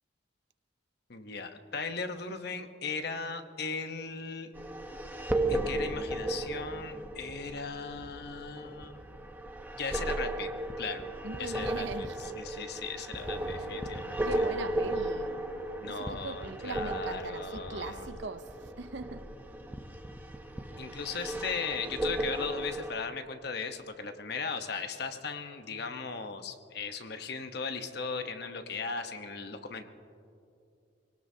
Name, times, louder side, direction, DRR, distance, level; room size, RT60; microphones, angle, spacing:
voice 1, 1.1-4.5 5.5-9.0 9.7-10.5 10.8-11.1 11.4-14.2 15.8-18.1 20.8-29.8, left 4 dB, 60° left, 1.0 m, -37 dB
sound 1, 4.6-22.9, right 1 dB, 10° right, 0.8 m, -35 dB
voice 2, 11.2-12.2 14.2-15.5 15.9-19.2, right 3 dB, 70° right, 0.7 m, -40 dB
sound 2, 13.2-19.6, equal, 85° left, 3.8 m, -53 dB
25.0 x 18.0 x 2.8 m
head